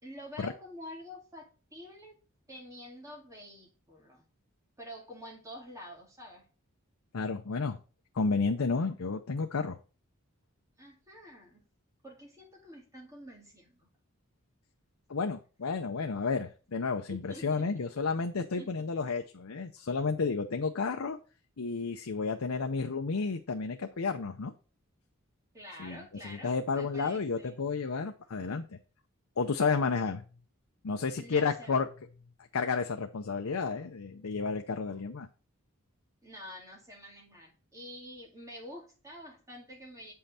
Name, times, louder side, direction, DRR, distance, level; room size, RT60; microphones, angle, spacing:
voice 1, 0.0-2.2 2.5-4.3 4.8-6.5 10.8-11.7 12.0-13.9 17.1-17.7 18.3-18.9 25.5-27.6 31.1-31.7 36.2-40.1, equal, 15° right, -1 dB, 2.4 m, -48 dB
voice 2, 7.1-7.8 8.2-9.8 15.1-21.2 21.6-24.5 25.8-28.6 29.4-30.2 30.8-31.9 32.5-35.3, left 4 dB, 80° left, 5 dB, 0.7 m, -31 dB
7.8 x 5.7 x 4.3 m, 0.36 s
head